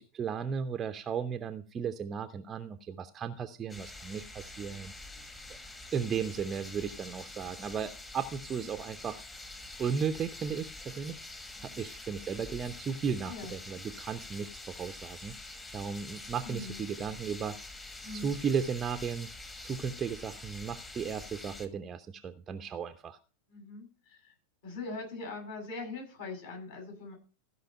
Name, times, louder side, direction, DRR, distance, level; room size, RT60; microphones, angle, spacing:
voice 1, 0.0-4.9 5.5-5.6 5.9-9.2 9.8-11.2 11.6-15.4 15.7-17.6 18.1-19.3 19.6-23.2, right 6 dB, 25° right, 8 dB, 0.7 m, -35 dB
sound 1, 3.7-21.7, left 2 dB, 15° left, 1.5 m, -46 dB
voice 2, 11.6-11.9 13.2-13.5 16.4-16.9 18.0-18.3 23.5-24.3 24.6-27.1, left 3 dB, 55° left, 1 dB, 7.7 m, -42 dB
15.5 x 5.6 x 5.5 m, 0.36 s
figure-of-eight pair, 90°, 0 cm